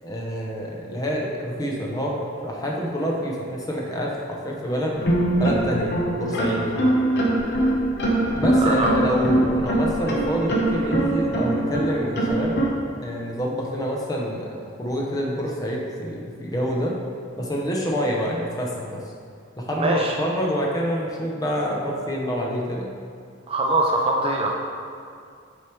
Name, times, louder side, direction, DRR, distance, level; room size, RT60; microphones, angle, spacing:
voice 1, 0.0-4.1 4.4-5.0 5.4-6.8 8.3-12.6 13.0-17.0 17.4-19.0 19.6-22.9, equal, 20° left, -2 dB, 0.7 m, -27 dB
sound 1, 4.9-12.7, right 1 dB, 55° left, 0.9 m, -22 dB
voice 2, 8.6-9.0 19.7-20.1 23.5-24.5, right 2 dB, 30° right, 0 dB, 0.4 m, -22 dB
6.4 x 3.3 x 4.5 m, 2.3 s
head